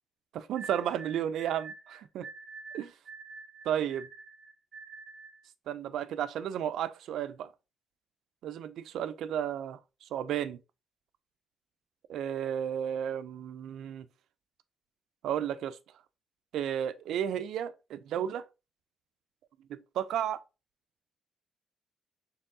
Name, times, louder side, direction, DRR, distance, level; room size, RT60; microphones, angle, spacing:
voice 1, 0.3-2.2 2.7-2.9 3.7-4.1 5.7-7.5 8.4-9.8 10.1-10.6 12.1-14.1 15.2-15.8 16.5-18.4 19.7-20.4, right 9 dB, 90° right, 0.3 m, -33 dB
sound 1, 0.5-5.4, right 4 dB, 30° right, 1.2 m, -47 dB
4.4 x 3.4 x 2.6 m
cardioid pair, 150°, 0 cm